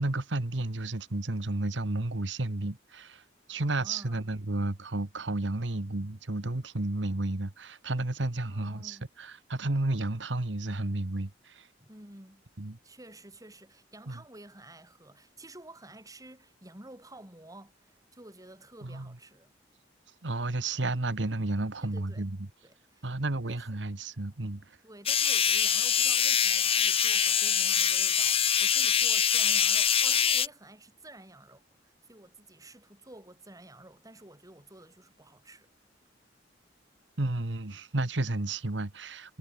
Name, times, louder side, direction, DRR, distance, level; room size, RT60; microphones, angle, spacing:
voice 1, 0.0-3.2 3.5-11.7 12.6-12.8 14.1-14.2 18.8-19.1 20.2-22.4 23.0-24.6 37.2-39.4, right 2 dB, 75° right, 1.5 m, -32 dB
voice 2, 3.6-4.3 8.5-9.1 11.8-12.4 12.8-19.5 21.8-22.3 22.6-23.8 24.8-35.7, right 1 dB, 20° right, 6.2 m, -51 dB
sound 1, 25.1-30.5, left 8 dB, 30° left, 0.8 m, -24 dB
head